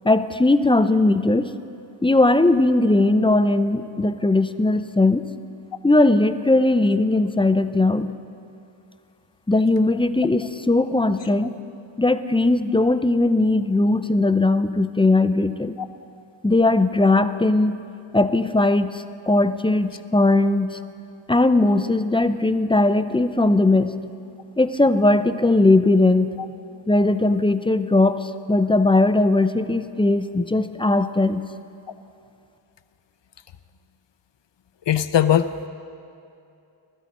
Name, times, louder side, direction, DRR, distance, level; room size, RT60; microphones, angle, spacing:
voice 1, 0.0-1.5 2.0-5.2 5.8-8.1 9.5-11.5 12.0-15.7 16.4-17.8 18.1-20.8 21.3-23.9 24.6-26.3 26.9-31.4, left 2 dB, 10° left, 11 dB, 0.4 m, -19 dB
voice 2, 34.9-35.7, left 10 dB, 60° left, 12 dB, 0.6 m, -19 dB
19.5 x 13.0 x 4.2 m, 2.6 s
wide cardioid pair, 85°, 48 cm